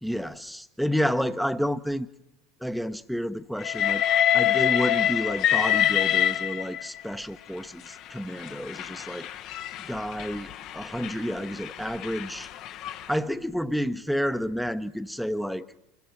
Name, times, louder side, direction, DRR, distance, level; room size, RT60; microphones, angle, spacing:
voice 1, 0.0-2.1 2.6-4.0 4.3-9.3 9.8-12.5 13.1-15.7, equal, ahead, 14 dB, 0.8 m, -30 dB
Train, 3.6-7.0 7.9-13.1, left 11 dB, 45° left, 0.8 m, -26 dB
26.0 x 22.5 x 4.5 m, 0.90 s
figure-of-eight pair, 75°, 0 cm